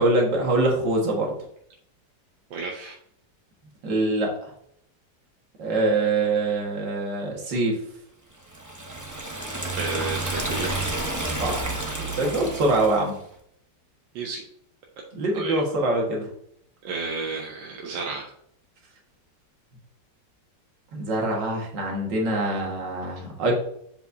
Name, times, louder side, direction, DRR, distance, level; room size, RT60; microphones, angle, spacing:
voice 1, 0.0-1.3 3.8-4.3 5.6-7.8 11.4-11.7 12.2-13.1 15.2-16.3 20.9-23.5, right 2 dB, 75° right, 0 dB, 2.2 m, -24 dB
voice 2, 2.5-3.0 9.7-10.9 14.1-14.4 15.3-15.6 16.8-18.3, right 4 dB, 90° right, 0 dB, 1.6 m, -32 dB
Liquid, 8.5-13.1, right 2 dB, 15° right, 0.6 m, -30 dB
7.3 x 5.4 x 2.7 m, 0.70 s
omnidirectional pair, 2.0 m